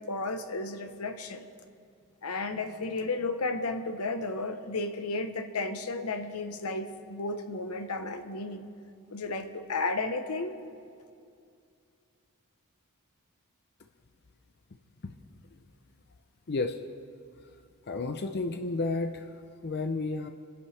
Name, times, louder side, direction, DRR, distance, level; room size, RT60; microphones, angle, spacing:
voice 1, 0.0-1.5 2.2-8.7 9.1-10.6, left 3 dB, 80° left, 8 dB, 1.0 m, -33 dB
voice 2, 16.5-16.8 17.9-19.3 19.6-20.3, left 3 dB, 45° left, 6 dB, 0.6 m, -31 dB
29.5 x 10.5 x 3.3 m, 2.4 s
head